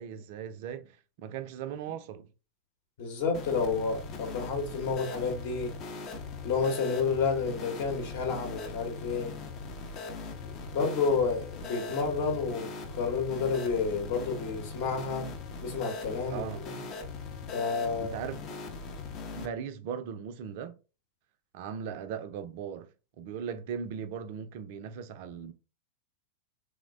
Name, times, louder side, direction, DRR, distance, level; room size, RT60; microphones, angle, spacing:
voice 1, 0.0-2.3 16.3-16.6 18.0-18.4 19.4-20.8 21.5-22.9 23.2-25.5, right 7 dB, 50° right, 0.4 m, -38 dB
voice 2, 3.0-5.7 6.4-9.3 10.4-15.3 15.6-16.8 17.5-18.1, left 5 dB, 50° left, 0.9 m, -30 dB
sound 1, 3.3-19.5, left 4 dB, 35° left, 0.5 m, -40 dB
3.1 x 2.1 x 2.4 m
figure-of-eight pair, 90°, 0 cm